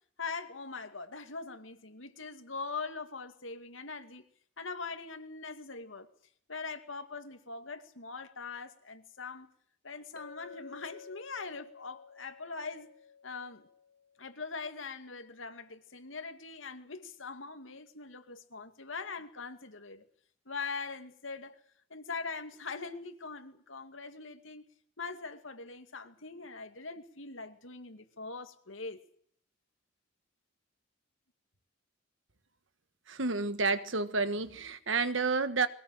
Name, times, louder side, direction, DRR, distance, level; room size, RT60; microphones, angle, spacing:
voice 1, 0.2-4.2 4.6-6.1 6.5-9.5 9.8-12.9 13.2-13.7 14.2-20.0 20.5-21.6 21.9-24.7 25.0-29.0, left 4 dB, 85° left, 2.4 m, -42 dB
Chink clink, 10.2-14.3, left 6 dB, 55° left, 3.2 m, -52 dB
voice 2, 33.1-35.7, right 4 dB, 75° right, 1.5 m, -30 dB
22.0 x 18.5 x 7.7 m
head